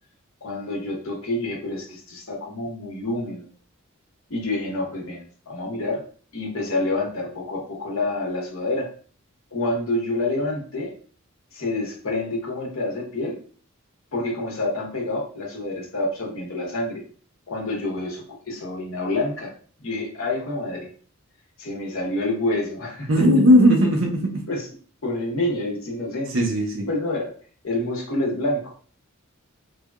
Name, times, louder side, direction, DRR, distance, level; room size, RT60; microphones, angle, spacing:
voice 1, 0.4-3.5 4.3-6.0 6.3-8.9 9.5-10.9 11.5-13.4 14.1-17.0 17.5-19.5 19.8-20.9 21.6-23.1 24.5-24.7 25.0-26.3 26.9-27.3 27.6-28.7, left 2 dB, 70° left, -1 dB, 0.9 m, -27 dB
voice 2, 23.1-24.5 26.3-26.9, equal, 65° right, 2 dB, 0.7 m, -17 dB
3.3 x 2.2 x 2.3 m, 0.43 s
head